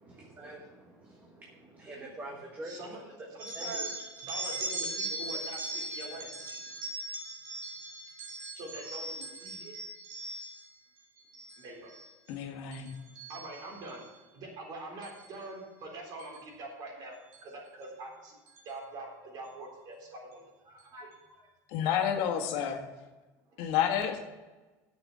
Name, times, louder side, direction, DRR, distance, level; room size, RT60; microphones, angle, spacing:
voice 1, 0.0-3.8 6.8-6.9, right 1 dB, 20° right, -1 dB, 1.5 m, -46 dB
voice 2, 2.6-3.0 3.3-3.9 4.2-6.6 8.5-9.7 11.6-11.9 13.3-18.4 18.6-21.4 22.5-22.6 23.5-23.6, right 2 dB, 45° right, -1 dB, 3.9 m, -44 dB
sound 1, 3.4-10.7 11.2-11.6 11.9-12.3 12.7-14.1 15.0-15.3 16.2-16.4 17.3-17.4 17.8-17.9 18.5-18.7, right 2 dB, 75° right, 2.8 m, -39 dB
voice 3, 12.3-12.9 21.7-22.8 23.6-24.2, left 9 dB, 70° left, 4 dB, 1.6 m, -30 dB
9.2 x 7.1 x 7.3 m, 1.2 s
cardioid pair, 145°, 10 cm